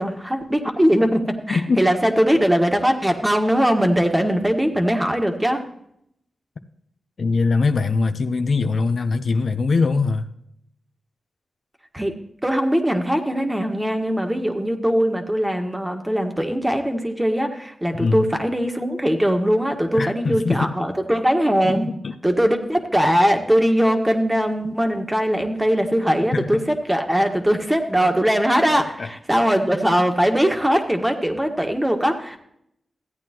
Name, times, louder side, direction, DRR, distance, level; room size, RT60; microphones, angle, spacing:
voice 1, 0.0-5.6 11.9-12.2 12.4-21.9 22.2-26.6 26.9-32.4, equal, 10° right, 4 dB, 1.5 m, -20 dB
voice 2, 1.5-1.8 7.2-10.3 17.9-18.2 19.9-20.8 21.6-21.8 22.0-22.1 26.3-26.6 29.0-29.1, left 4 dB, 70° left, 8 dB, 0.7 m, -22 dB
14.5 x 8.8 x 3.0 m, 0.73 s
cardioid pair, 55°, 0 cm